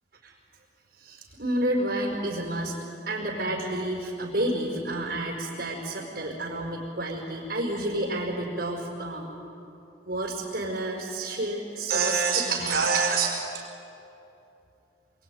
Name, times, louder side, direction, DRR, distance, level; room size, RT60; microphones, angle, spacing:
voice 1, 1.0-2.8 3.1-9.3 10.0-13.6, right 2 dB, 55° right, -2 dB, 5.1 m, -29 dB
28.5 x 22.5 x 9.4 m, 2.8 s
head